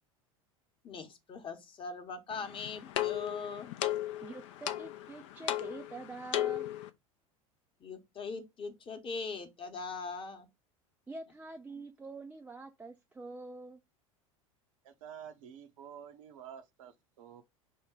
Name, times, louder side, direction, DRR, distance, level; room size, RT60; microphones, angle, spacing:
voice 1, 0.8-3.7 7.8-10.5, left 4 dB, 30° left, 0.9 m, -41 dB
sound 1, 2.3-6.9, left 13 dB, 55° left, 0.5 m, -36 dB
voice 2, 4.2-6.7 11.1-13.8, right 3 dB, 10° right, 0.4 m, -46 dB
voice 3, 14.8-17.4, right 8 dB, 65° right, 0.8 m, -49 dB
5.2 x 2.1 x 3.8 m
figure-of-eight pair, 75°, 18 cm